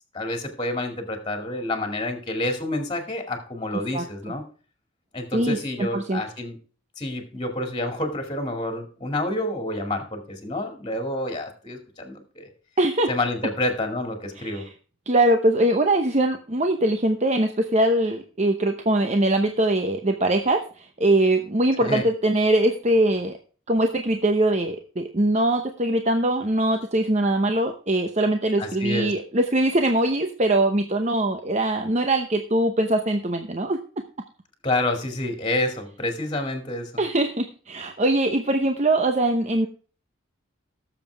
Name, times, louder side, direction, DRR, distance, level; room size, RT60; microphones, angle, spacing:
voice 1, 0.1-4.4 5.1-6.6 7.0-12.5 13.1-14.6 21.8-22.1 28.6-29.1 34.6-36.9, left 1 dB, 20° left, 4 dB, 2.3 m, -28 dB
voice 2, 5.3-6.2 12.8-13.1 14.4-14.6 15.1-23.4 23.7-34.0 37.0-39.7, right 1 dB, 30° right, 5 dB, 0.8 m, -22 dB
18.0 x 7.3 x 3.4 m, 0.40 s
head